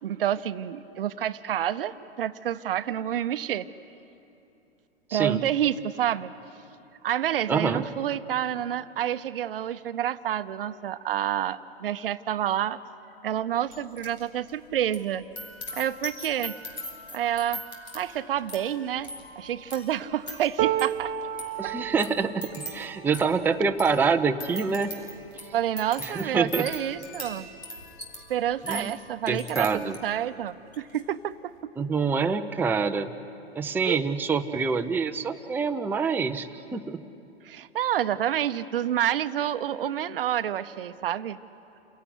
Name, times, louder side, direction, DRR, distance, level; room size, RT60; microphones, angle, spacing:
voice 1, 0.0-3.7 5.1-6.3 7.0-12.8 13.2-15.2 15.7-16.5 17.1-17.6 17.9-19.1 19.4-21.1 21.6-21.7 25.5-27.5 28.3-31.7 33.8-34.0 37.4-41.4, right 11 dB, 60° right, 13 dB, 0.8 m, -28 dB
voice 2, 5.1-5.4 7.5-7.8 21.6-24.9 26.0-26.7 28.6-28.9 29.3-30.0 31.8-33.1 33.5-37.0, right 5 dB, 5° right, 5 dB, 0.6 m, -26 dB
sound 1, 13.7-14.2 14.5-30.2 30.7-31.0, left 1 dB, 85° left, 4.7 m, -41 dB
sound 2, 20.6-26.7 27.3-27.5 27.8-28.6 29.5-29.6, right 12 dB, 35° right, 1.1 m, -34 dB
28.0 x 17.0 x 9.6 m, 2.8 s
figure-of-eight pair, 105°, 32 cm